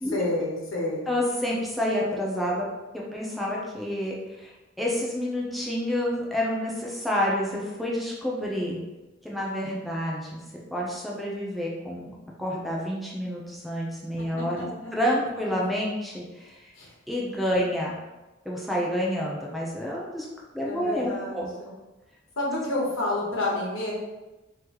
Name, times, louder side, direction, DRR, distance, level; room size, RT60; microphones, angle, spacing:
voice 1, 0.1-1.0 14.6-14.9 16.8-16.9 20.6-21.7 22.4-23.9, left 2 dB, 80° left, -4 dB, 1.3 m, -29 dB
voice 2, 1.1-2.7 2.9-4.5 4.8-8.8 9.2-10.4 10.7-16.7 17.1-18.0 18.4-20.3 20.5-21.5, equal, ahead, -4 dB, 0.7 m, -29 dB
4.0 x 3.3 x 3.0 m, 1.1 s
head